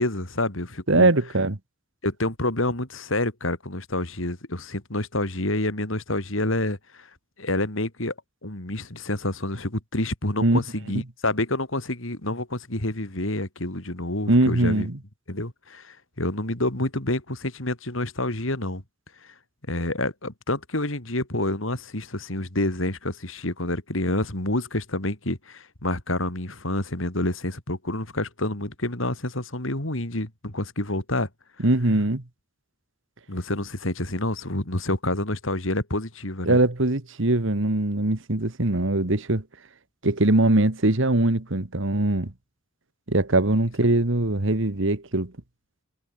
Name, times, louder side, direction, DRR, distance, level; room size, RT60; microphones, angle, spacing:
voice 1, 0.0-1.1 2.0-7.1 7.4-8.1 8.4-14.9 15.3-18.8 19.7-31.3 33.3-36.6, left 1 dB, 70° left, 4.2 m, -28 dB
voice 2, 0.9-1.6 10.4-10.6 14.3-15.0 31.6-32.2 36.4-39.4 40.0-42.3 43.1-45.3, right 2 dB, 65° right, 1.8 m, -21 dB
head